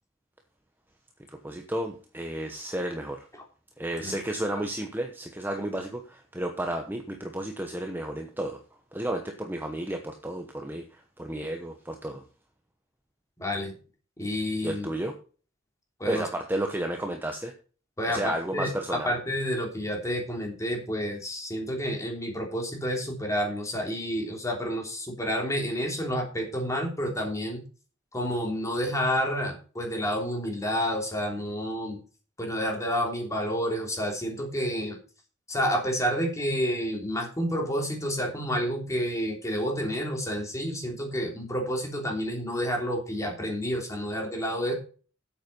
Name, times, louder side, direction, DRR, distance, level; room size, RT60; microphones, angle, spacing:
voice 1, 1.3-3.3 3.8-8.6 8.9-12.2 14.6-15.2 16.1-17.5 18.1-19.2, right 1 dB, 10° right, 4 dB, 1.0 m, -32 dB
voice 2, 13.4-13.7 14.2-14.9 16.0-16.3 18.0-27.6 28.1-32.0 32.4-35.0 35.5-44.7, equal, 15° left, 1 dB, 3.3 m, -29 dB
8.9 x 8.1 x 5.4 m, 0.38 s
head